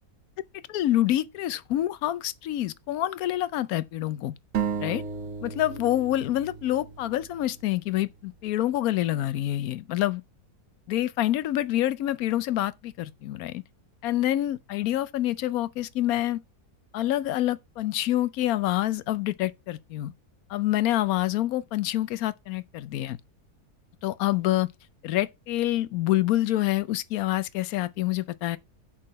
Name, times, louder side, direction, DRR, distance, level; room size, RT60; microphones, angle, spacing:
voice 1, 0.7-4.4 4.8-5.0 5.4-10.2 10.9-13.6 14.0-16.4 16.9-20.1 20.5-23.2 24.0-24.7 25.0-28.6, left 14 dB, 70° left, 1.0 m, -27 dB
sound 1, 4.5-8.2, right 7 dB, 55° right, 1.2 m, -34 dB
7.6 x 5.8 x 5.7 m
omnidirectional pair, 1.7 m